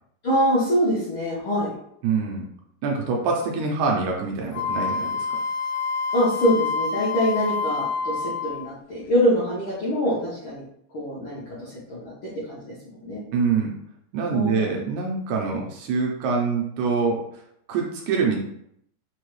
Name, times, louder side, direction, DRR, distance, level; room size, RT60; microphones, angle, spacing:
voice 1, 0.2-1.7 6.1-10.6 10.9-12.1 12.5-13.2 14.3-14.7 15.5-15.6, equal, 75° left, -9 dB, 1.2 m, -24 dB
voice 2, 2.0-2.5 2.8-5.3 13.3-13.7 14.1-17.2 17.7-18.4, right 5 dB, 80° right, -1 dB, 1.9 m, -25 dB
Wind instrument woodwind instrument, 4.5-8.7, left 4 dB, 90° left, 2.2 m, -27 dB
5.3 x 2.1 x 3.1 m, 0.71 s
omnidirectional pair, 3.8 m